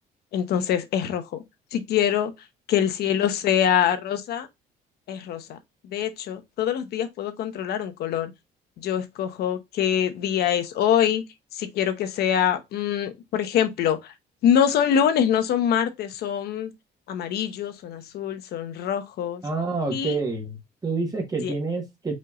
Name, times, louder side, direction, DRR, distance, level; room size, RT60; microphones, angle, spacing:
voice 1, 0.3-1.4 1.7-2.3 2.7-4.5 5.1-5.6 5.9-8.3 8.8-11.2 11.6-14.0 14.4-16.7 17.1-19.4 19.9-20.2 21.4-21.5, left 9 dB, 70° left, 0.9 m, -24 dB
voice 2, 19.4-22.1, right 3 dB, 20° right, 1.4 m, -28 dB
5.3 x 3.0 x 2.5 m
cardioid pair, 110°, 17 cm